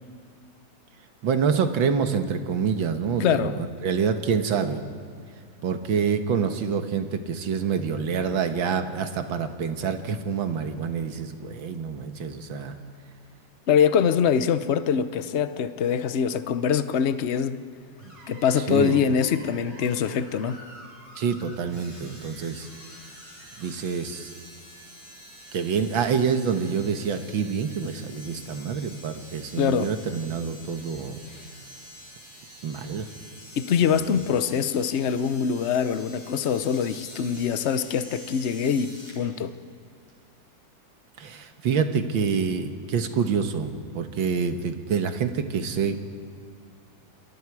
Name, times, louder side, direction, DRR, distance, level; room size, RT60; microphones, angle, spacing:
voice 1, 1.2-4.8 5.6-12.8 18.0-18.1 18.7-19.0 21.2-22.7 23.6-24.3 25.5-31.2 32.6-33.1 33.8-34.2 41.2-46.0, right 6 dB, 85° right, 7 dB, 2.1 m, -27 dB
voice 2, 3.2-3.5 13.7-17.6 18.3-20.6 29.6-29.9 33.6-39.5, left 7 dB, 55° left, 11 dB, 0.8 m, -24 dB
Screech, 18.0-24.0, right 1 dB, 65° right, 6.4 m, -49 dB
sound 1, 21.7-39.2 40.1-40.2, equal, 20° left, 6.8 m, -47 dB
28.0 x 22.0 x 4.8 m, 2.4 s
omnidirectional pair, 2.1 m